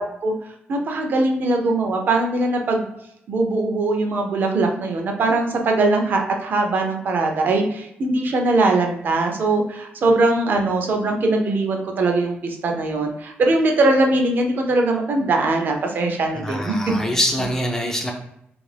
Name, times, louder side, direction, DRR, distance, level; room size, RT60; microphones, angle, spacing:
voice 1, 0.7-2.9 3.3-16.7 17.0-17.2, right 2 dB, 50° right, 3 dB, 0.5 m, -21 dB
voice 2, 16.3-18.1, equal, 10° left, 2 dB, 0.4 m, -24 dB
2.5 x 2.4 x 3.2 m, 0.77 s
wide cardioid pair, 145°, 4 cm